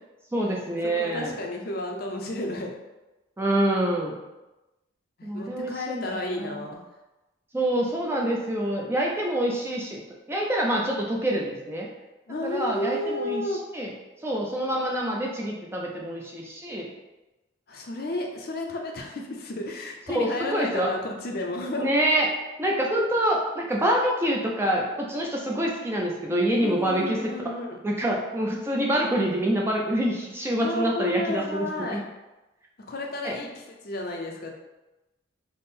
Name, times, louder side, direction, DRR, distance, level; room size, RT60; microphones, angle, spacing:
voice 1, 0.3-1.3 3.4-4.2 5.2-6.6 7.5-10.0 10.3-11.9 12.4-13.4 13.7-13.9 14.2-16.9 20.1-20.9 21.8-22.3 22.6-27.2 27.8-32.0 33.2-33.4, right 1 dB, 10° right, -2 dB, 0.3 m, -26 dB
voice 2, 0.8-2.7 5.2-6.8 12.3-13.6 17.7-21.9 26.6-27.8 30.6-32.0 32.9-34.5, left 1 dB, 50° left, 1 dB, 0.5 m, -32 dB
3.5 x 2.0 x 4.1 m, 1.0 s
head